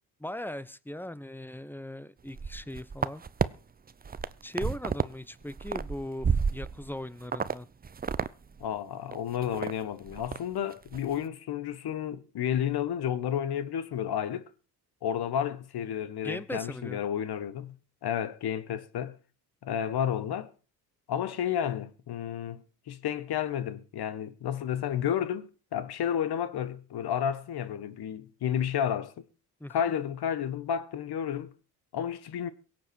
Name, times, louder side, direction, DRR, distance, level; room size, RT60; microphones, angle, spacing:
voice 1, 0.2-3.2 4.4-7.7 16.2-17.0 29.6-29.9, left 1 dB, 5° left, 1.0 m, -39 dB
sound 1, 2.3-3.5 3.9-5.1 5.4-6.9 7.3-7.5 7.8-8.3 8.6-8.7 9.1-9.7 10.1-10.4 10.7-11.0, right 5 dB, 20° right, 0.7 m, -30 dB
voice 2, 8.6-14.5 15.0-17.7 18.0-19.2 19.6-20.5 21.1-29.1 29.7-31.5 31.9-32.5, left 9 dB, 50° left, 1.5 m, -31 dB
23.0 x 7.7 x 4.7 m
hypercardioid pair, 55°, 50 cm